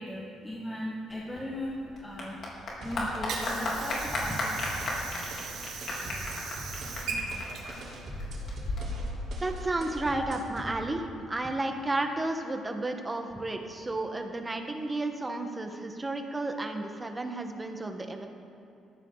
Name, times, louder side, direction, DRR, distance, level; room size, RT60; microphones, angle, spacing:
voice 1, 0.0-2.4 2.8-5.2 10.1-10.2, left 1 dB, 10° left, -4 dB, 1.9 m, -38 dB
Clapping / Applause, 1.1-10.1, left 2 dB, 50° left, 3.6 m, -35 dB
sound 1, 2.8-10.8, right 1 dB, 55° right, 3.9 m, -44 dB
Water / Sink (filling or washing), 2.8-8.8, right 4 dB, 80° right, 2.4 m, -39 dB
voice 2, 9.4-18.3, right 2 dB, 15° right, 4 dB, 1.4 m, -32 dB
18.0 x 14.0 x 4.0 m, 2.9 s
cardioid pair, 120°, 0 cm